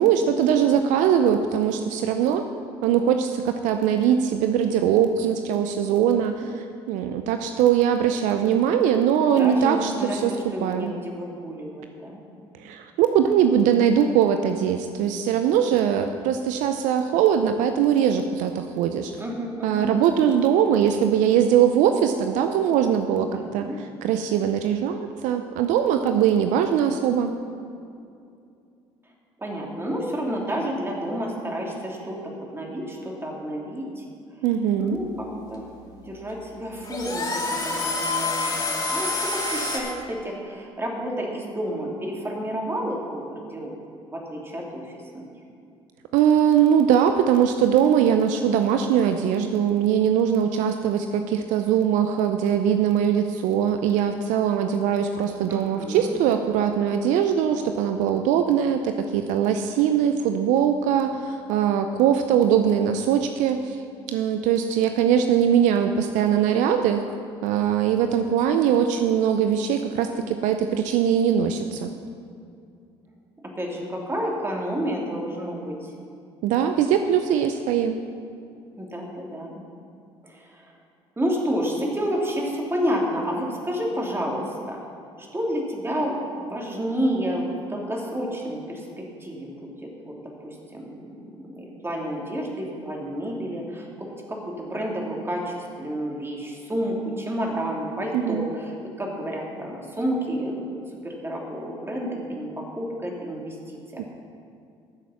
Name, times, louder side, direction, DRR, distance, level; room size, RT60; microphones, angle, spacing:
voice 1, 0.0-2.5 2.8-10.4 10.6-10.9 12.6-19.2 19.6-23.7 24.0-27.3 34.4-35.0 46.1-63.8 64.1-67.0 67.4-71.9 76.4-78.0 98.1-98.5 104.0-104.1, right 8 dB, 70° right, 7 dB, 0.6 m, -21 dB
voice 2, 9.3-12.2 19.2-19.9 23.2-23.8 29.4-34.0 34.8-35.7 36.0-43.7 44.1-45.3 55.5-56.2 73.4-75.9 78.8-79.6 80.2-80.7 81.2-84.8 85.2-89.7 90.0-100.8 101.0-104.0, equal, 20° right, -2 dB, 3.1 m, -30 dB
sound 1, 34.8-39.8, left 3 dB, 30° left, 2.6 m, -28 dB
13.0 x 7.5 x 5.9 m, 2.5 s
hypercardioid pair, 60°, 14 cm